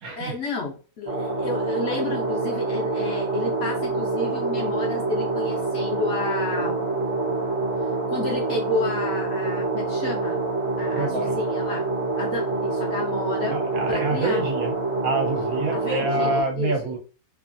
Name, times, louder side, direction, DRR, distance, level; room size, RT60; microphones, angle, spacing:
voice 1, 0.2-6.9 8.1-10.4 10.8-11.9 12.2-13.6 13.9-14.4 15.7-16.9, left 3 dB, 60° left, 0 dB, 0.8 m, -31 dB
sound 1, 1.1-16.4, right 3 dB, 40° right, 0.6 m, -26 dB
voice 2, 10.9-11.3 13.5-14.7 15.0-17.0, right 2 dB, 70° right, 1 dB, 1.2 m, -26 dB
3.0 x 2.5 x 2.6 m, 0.36 s
omnidirectional pair, 1.6 m